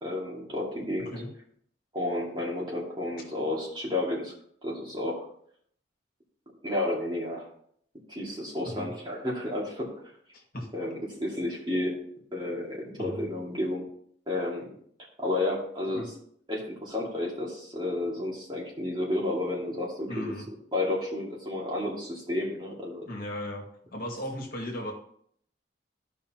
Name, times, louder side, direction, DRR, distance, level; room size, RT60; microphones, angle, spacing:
voice 1, 0.0-1.1 1.9-4.3 4.6-5.2 6.6-7.5 8.1-9.9 10.7-12.0 12.3-13.8 14.3-14.7 15.2-16.0 16.5-20.3 20.7-23.1, left 1 dB, 25° right, -4 dB, 2.3 m, -31 dB
voice 2, 8.6-8.9 10.3-10.7 13.0-13.3 15.9-16.1 20.1-20.5 23.1-23.6 23.9-24.9, left 1 dB, 50° left, 0 dB, 1.9 m, -36 dB
13.5 x 5.4 x 2.9 m, 0.64 s
head